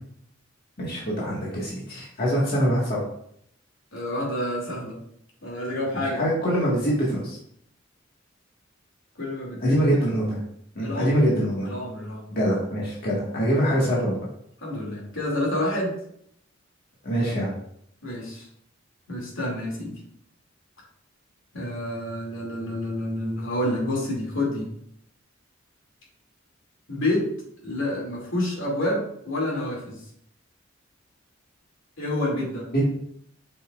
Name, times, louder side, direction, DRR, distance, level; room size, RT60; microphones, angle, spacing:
voice 1, 0.8-3.0 6.1-7.4 9.6-10.4 10.7-11.7 12.3-14.1 17.0-17.5 32.7-32.8, equal, 50° left, -5 dB, 1.6 m, -24 dB
voice 2, 3.9-5.0 5.4-6.2 9.2-9.8 10.8-11.2 11.7-12.3 13.8-13.9 14.6-15.9 18.0-18.5 19.1-20.0 21.5-24.7 26.9-27.3 27.6-30.0 32.0-32.7, left 1 dB, 80° left, -3 dB, 2.5 m, -28 dB
8.0 x 5.6 x 2.4 m, 0.69 s
head